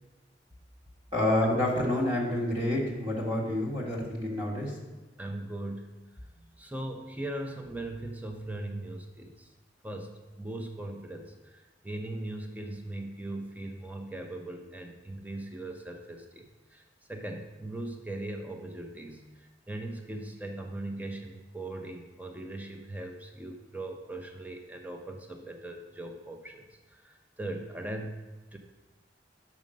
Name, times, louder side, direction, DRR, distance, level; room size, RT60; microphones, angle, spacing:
voice 1, 1.1-4.7, left 1 dB, 25° right, -5 dB, 1.7 m, -28 dB
voice 2, 5.2-5.9 6.6-9.5 9.8-11.3 11.8-16.5 16.7-16.8 17.1-19.2 19.7-26.6 27.0-28.2 28.5-28.6, right 1 dB, 10° right, 3 dB, 0.6 m, -39 dB
6.3 x 5.4 x 6.4 m, 1.2 s
head